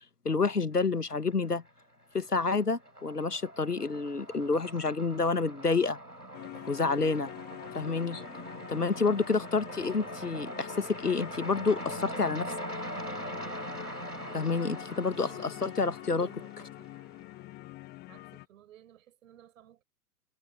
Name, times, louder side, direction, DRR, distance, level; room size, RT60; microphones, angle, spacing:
voice 1, 0.2-1.6 2.1-6.0 6.7-7.3 7.7-8.2 8.7-12.5 14.3-16.3, left 4 dB, 85° left, 1.5 m, -29 dB
sound 1, 1.1-1.8 2.1-17.3, right 1 dB, 90° right, 6.3 m, -42 dB
sound 2, 6.3-18.5, left 19 dB, 20° left, 0.8 m, -45 dB
voice 2, 8.7-9.1 14.2-16.9 18.1-19.8, right 11 dB, 60° right, 6.3 m, -57 dB
figure-of-eight pair, 95°, 46 cm